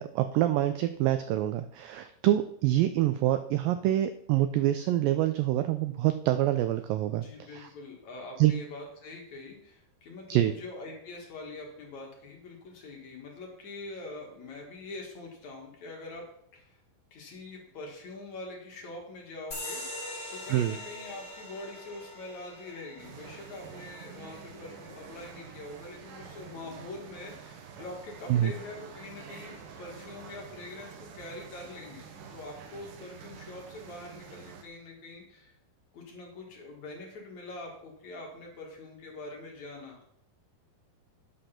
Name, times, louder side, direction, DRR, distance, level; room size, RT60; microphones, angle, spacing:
voice 1, 0.0-7.3 7.5-7.7 8.4-8.5 10.3-10.5 20.5-20.8 28.3-28.5, right 13 dB, 85° right, 10 dB, 2.0 m, -26 dB
voice 2, 7.1-16.3 16.5-16.8 17.1-32.0 32.3-35.6 35.9-40.2, left 2 dB, 55° left, 0 dB, 2.6 m, -44 dB
sound 1, 19.5-26.6, left 1 dB, 20° left, 3.4 m, -44 dB
sound 2, 23.0-34.6, right 6 dB, 70° right, 2.4 m, -48 dB
10.0 x 6.0 x 5.8 m, 0.71 s
omnidirectional pair, 4.6 m